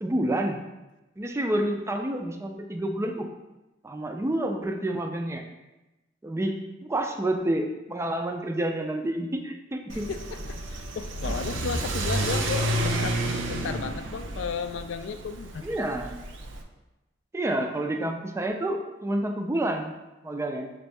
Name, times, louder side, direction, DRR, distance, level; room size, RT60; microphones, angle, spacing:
voice 1, 0.0-0.6 1.2-3.3 3.8-5.4 6.2-10.1 15.6-16.1 17.3-19.9 20.2-20.7, right 1 dB, 15° right, 4 dB, 0.3 m, -29 dB
voice 2, 9.9-15.7, left 6 dB, 70° left, 9 dB, 0.3 m, -34 dB
Car / Accelerating revving vroom, 9.9-16.6, right 1 dB, 90° right, 0.5 m, -30 dB
6.0 x 2.6 x 3.3 m, 1.0 s
head